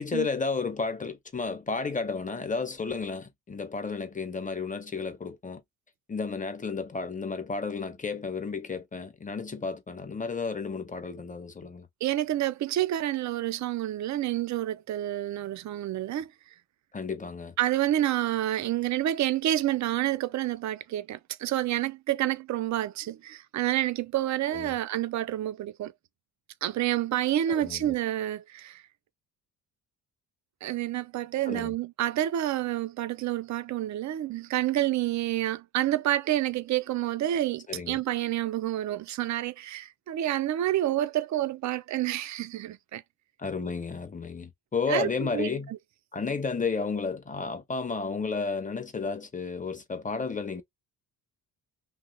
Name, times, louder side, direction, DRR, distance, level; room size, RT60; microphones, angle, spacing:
voice 1, 0.0-5.6 6.1-11.9 16.9-17.5 24.5-24.7 27.5-27.9 31.5-31.7 37.7-38.0 43.4-45.7 46.1-50.6, left 4 dB, 20° left, 0.7 m, -32 dB
voice 2, 12.0-16.3 17.6-25.9 26.6-28.8 30.6-43.0 44.9-45.8, right 13 dB, 45° right, 0.4 m, -29 dB
2.8 x 2.0 x 3.8 m
cardioid pair, 90°, 40 cm